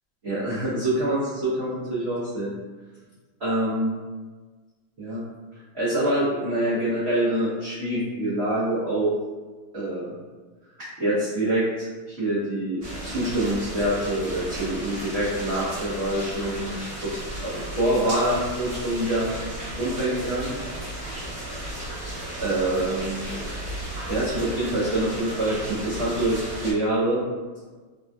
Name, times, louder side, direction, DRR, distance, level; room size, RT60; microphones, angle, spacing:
voice 1, 0.2-2.5 3.4-3.9 5.0-5.2 5.7-9.1 9.7-10.1 10.8-17.1 17.4-19.3 19.8-20.5 22.4-23.3 24.1-27.2, right 1 dB, 80° right, -11 dB, 0.5 m, -25 dB
sound 1, 12.8-26.7, right 1 dB, 35° right, 1.1 m, -34 dB
3.5 x 2.2 x 2.5 m, 1.3 s
omnidirectional pair, 2.3 m